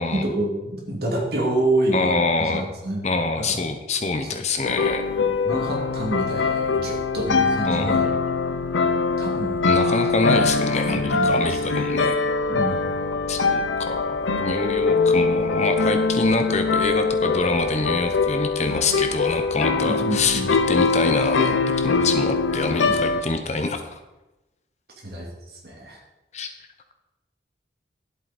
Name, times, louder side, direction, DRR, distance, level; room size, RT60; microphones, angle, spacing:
voice 1, 0.1-3.0 3.4-3.6 4.3-4.4 5.4-8.0 9.2-10.1 10.8-11.8 12.5-12.9 19.8-20.5 22.8-23.0 25.0-25.3 25.6-26.0, right 1 dB, 55° right, -1 dB, 2.5 m, -28 dB
voice 2, 1.9-2.7 3.0-5.0 7.7-8.1 9.6-12.2 13.3-20.4 20.7-23.9 26.3-26.5, left 3 dB, 35° left, 7 dB, 0.8 m, -25 dB
sound 1, 4.6-23.2, left 4 dB, 90° left, 0.7 m, -23 dB
11.0 x 7.8 x 4.2 m, 1.0 s
head